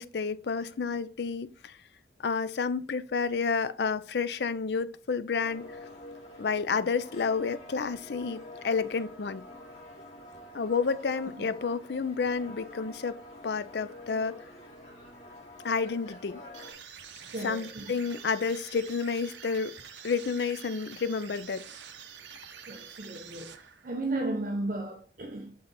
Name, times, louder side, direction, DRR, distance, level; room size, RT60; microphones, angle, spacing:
voice 1, 0.0-1.8 2.2-5.6 6.4-9.4 10.5-13.2 13.4-14.3 15.6-16.4 17.4-19.7 20.0-21.6, left 5 dB, 65° left, 0.5 m, -30 dB
sound 1, 5.4-16.7, left 1 dB, 35° left, 2.3 m, -47 dB
sound 2, 16.5-24.0, right 8 dB, 80° right, 0.8 m, -47 dB
voice 2, 17.2-17.9 22.7-25.6, right 2 dB, 50° right, 0.8 m, -35 dB
7.8 x 3.9 x 4.1 m
head